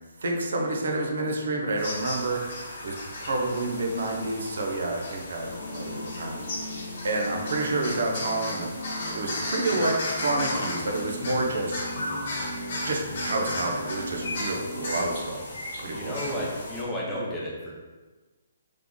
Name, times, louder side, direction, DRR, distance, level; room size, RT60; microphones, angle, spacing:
voice 1, 0.2-2.4 2.8-3.0 3.2-6.4 7.0-8.7 9.1-11.8 12.8-15.4 15.8-16.2, right 2 dB, 60° right, 2 dB, 0.7 m, -29 dB
sound 1, 1.8-16.8, left 1 dB, 35° left, 1.0 m, -35 dB
sound 2, 5.5-15.1, equal, 50° left, 0.5 m, -38 dB
voice 2, 15.9-17.7, equal, ahead, -8 dB, 0.6 m, -32 dB
3.5 x 3.2 x 3.8 m, 1.3 s
hypercardioid pair, 180°, 0 cm